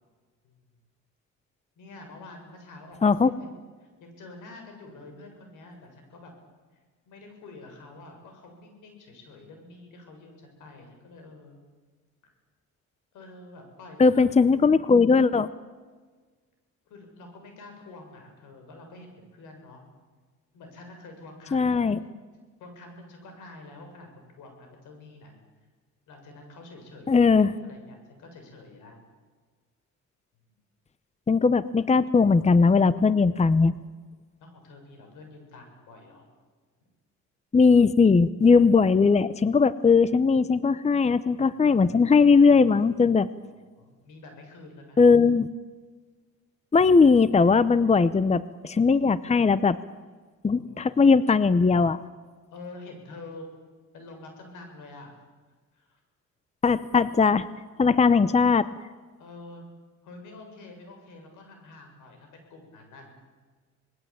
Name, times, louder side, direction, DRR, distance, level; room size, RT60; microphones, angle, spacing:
voice 1, 1.8-6.3 7.1-11.6 13.1-14.3 16.9-19.8 20.5-22.2 22.6-25.3 26.1-29.0 34.4-36.2 41.3-41.6 43.4-45.0 50.5-50.9 52.5-53.5 53.9-55.1 55.7-56.0 59.2-59.7 60.0-63.2, left 2 dB, 85° left, 4 dB, 7.3 m, -47 dB
voice 2, 14.0-15.5 21.5-22.0 27.1-27.5 31.3-33.7 37.5-43.3 45.0-45.5 46.7-49.8 50.4-52.0 56.6-57.5 57.8-58.7, left 4 dB, 20° left, 16 dB, 0.8 m, -19 dB
26.5 x 20.5 x 8.9 m, 1.5 s
cardioid pair, 90°, 30 cm